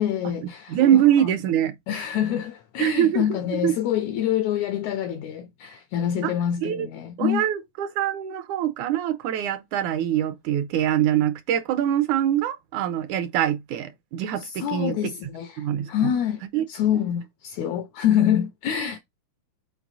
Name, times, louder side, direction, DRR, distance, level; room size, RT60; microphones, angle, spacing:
voice 1, 0.0-1.3 1.9-7.4 14.4-16.4 16.7-19.0, left 10 dB, 80° left, 1.6 m, -26 dB
voice 2, 0.7-1.7 2.8-3.7 6.2-6.3 6.6-6.9 7.2-14.9 15.6-15.9 16.5-16.6, right 11 dB, 75° right, 2.0 m, -23 dB
5.9 x 4.4 x 4.0 m
omnidirectional pair, 3.8 m